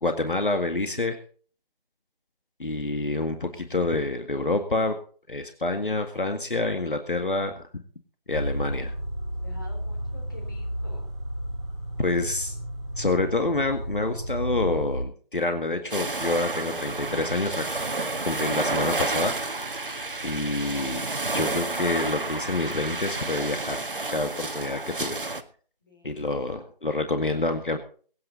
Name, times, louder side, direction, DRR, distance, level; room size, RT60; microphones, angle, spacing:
voice 1, 0.0-1.2 2.6-5.0 5.3-7.6 8.3-8.9 12.0-12.5 13.0-17.6 18.2-19.6 20.2-21.1 21.3-25.2 26.0-27.8, left 2 dB, 60° left, 6 dB, 1.9 m, -27 dB
sound 1, 8.3-15.0, equal, 30° right, 3.9 m, -32 dB
voice 2, 9.4-11.1 25.8-26.2, left 1 dB, 20° left, 0 dB, 3.6 m, -49 dB
sound 2, 15.9-25.4, right 2 dB, 65° right, 1.7 m, -30 dB
22.5 x 9.5 x 4.0 m, 0.43 s
figure-of-eight pair, 180°, 29 cm